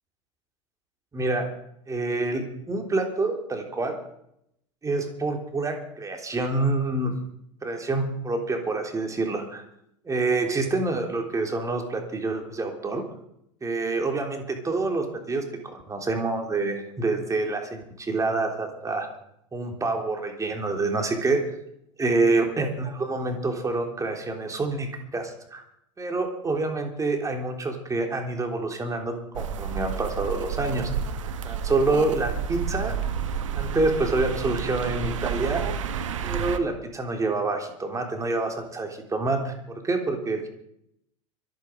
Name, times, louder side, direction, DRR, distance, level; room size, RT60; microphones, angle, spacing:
voice 1, 1.1-1.5 1.9-3.9 4.8-7.1 7.6-9.6 10.0-13.0 13.6-19.1 19.5-21.4 22.0-25.6 26.0-30.9 31.4-32.9 33.5-35.6 36.2-40.5, right 3 dB, 20° right, 3 dB, 3.4 m, -27 dB
sound 1, 29.3-36.6, right 7 dB, 75° right, 1.4 m, -30 dB
24.0 x 9.3 x 5.2 m, 0.76 s
hypercardioid pair, 85°, 17 cm